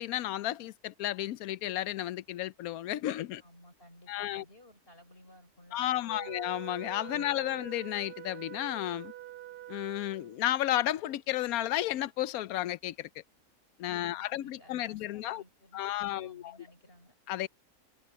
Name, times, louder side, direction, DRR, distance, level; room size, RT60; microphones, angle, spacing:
voice 1, 0.0-3.4 4.1-4.4 5.7-9.1 9.7-13.2 13.8-15.4 15.7-16.5 17.3-17.5, left 13 dB, 75° left, 1.0 m, -33 dB
voice 2, 3.4-6.4 7.1-7.7 13.9-17.1, equal, 35° left, 6.9 m, -57 dB
Wind instrument woodwind instrument, 6.1-10.5, right 14 dB, 85° right, 1.5 m, -46 dB
omnidirectional pair, 1.6 m